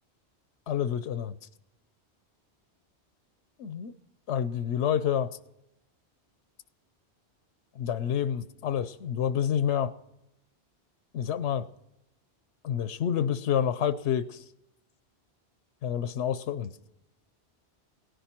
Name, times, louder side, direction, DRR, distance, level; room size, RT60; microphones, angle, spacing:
voice 1, 0.7-1.3 3.6-3.9 4.3-5.4 7.8-9.9 11.1-11.7 12.6-14.4 15.8-16.7, left 9 dB, 85° left, 13 dB, 1.0 m, -28 dB
17.5 x 10.5 x 4.4 m, 0.88 s
omnidirectional pair, 1.1 m